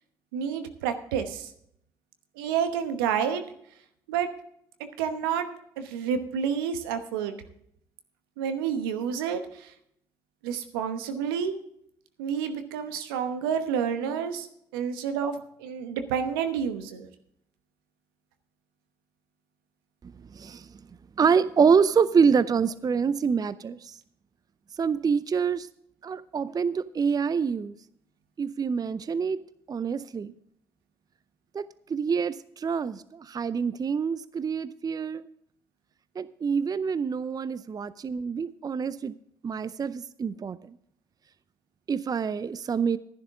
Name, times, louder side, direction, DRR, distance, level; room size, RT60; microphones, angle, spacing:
voice 1, 0.3-1.5 2.4-3.4 4.1-4.3 4.8-5.5 5.8-7.3 8.4-9.7 10.4-11.6 12.2-14.5 14.7-17.1, right 7 dB, 85° right, 9 dB, 1.0 m, -29 dB
voice 2, 20.0-20.8 21.2-24.0 24.7-25.7 26.0-27.7 28.4-29.4 29.7-30.3 31.5-35.3 36.2-39.1 39.4-40.8 41.9-43.0, right 6 dB, 35° right, 17 dB, 0.5 m, -26 dB
12.0 x 11.0 x 3.6 m, 0.71 s
hypercardioid pair, 50°, 12 cm